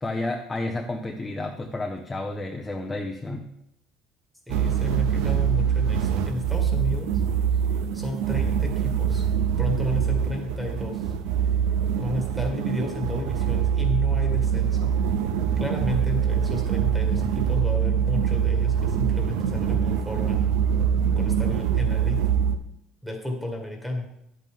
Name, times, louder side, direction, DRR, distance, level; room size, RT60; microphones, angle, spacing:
voice 1, 0.0-3.5, left 2 dB, 10° left, 3 dB, 0.7 m, -31 dB
voice 2, 4.5-7.1 7.9-9.2 9.6-11.1 11.9-14.9 15.6-20.5 21.2-22.2 23.0-24.1, left 1 dB, 5° right, 1 dB, 1.9 m, -32 dB
sound 1, 4.5-22.6, right 8 dB, 85° right, 0.7 m, -24 dB
10.5 x 8.2 x 3.7 m, 0.80 s
cardioid pair, 140°, 0 cm